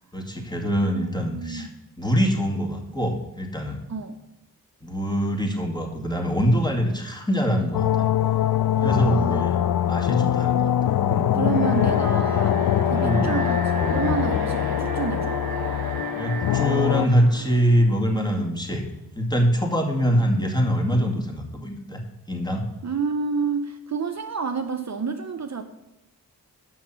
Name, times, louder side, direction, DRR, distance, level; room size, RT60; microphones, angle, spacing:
voice 1, 0.1-1.7 2.0-3.8 4.8-8.1 8.8-9.5 9.9-11.3 12.9-13.3 16.1-18.9 19.2-22.0 22.3-22.6, equal, 10° left, 1 dB, 2.2 m, -24 dB
voice 2, 0.8-1.8 3.9-4.1 8.8-9.5 11.3-15.4 22.8-25.6, right 5 dB, 45° right, 6 dB, 0.7 m, -29 dB
sound 1, 7.7-17.1, left 11 dB, 65° left, 0.5 m, -23 dB
Alarm, 11.5-18.6, right 5 dB, 65° right, 1.4 m, -35 dB
6.4 x 6.1 x 7.4 m, 0.97 s
cardioid pair, 40°, 38 cm